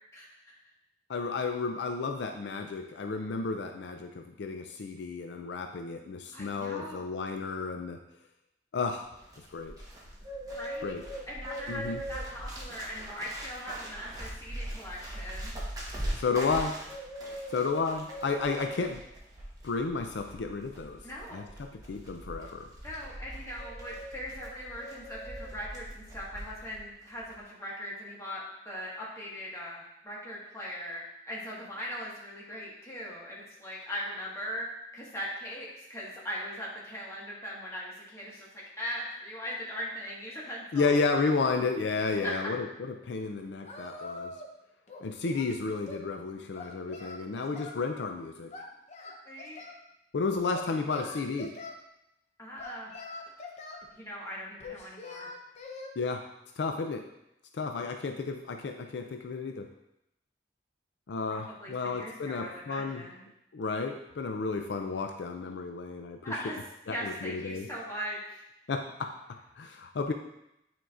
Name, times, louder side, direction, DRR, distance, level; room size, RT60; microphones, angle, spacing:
voice 1, 0.1-0.6 6.3-7.0 10.5-10.9 11.3-15.5 21.0-21.4 22.8-34.7 34.9-40.9 42.2-42.5 49.2-49.6 52.4-52.9 53.9-55.3 61.3-63.2 66.2-66.6 66.9-68.4, equal, 15° left, -6 dB, 1.6 m, -40 dB
voice 2, 1.1-8.0 8.7-9.1 9.5-9.7 10.8-11.0 11.7-12.0 16.1-16.8 17.5-19.0 19.6-21.0 21.3-22.7 40.7-44.3 45.0-48.5 50.1-51.6 56.0-56.3 56.6-57.1 57.5-59.7 61.1-63.1 63.5-66.3 66.9-67.7 68.7-70.1, left 4 dB, 70° left, 5 dB, 0.4 m, -32 dB
Bird, 9.0-26.8 27.1-27.4, right 1 dB, 20° right, 1.1 m, -41 dB
Singing, 43.6-44.6 44.9-46.1 46.5-47.8 48.5-49.8 50.5-51.8 52.6-53.9 54.6-55.9, left 3 dB, 40° left, 0.7 m, -44 dB
9.2 x 4.5 x 2.5 m, 0.85 s
head